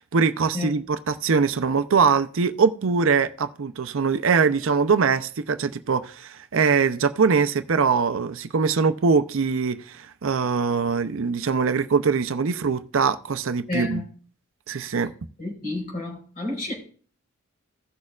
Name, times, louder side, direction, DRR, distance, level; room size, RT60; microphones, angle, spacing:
voice 1, 0.0-14.0 14.7-15.1, right 5 dB, 60° right, 0.5 m, -22 dB
voice 2, 13.7-14.0 15.4-16.7, left 2 dB, 40° left, 4.1 m, -30 dB
16.5 x 6.5 x 2.4 m
head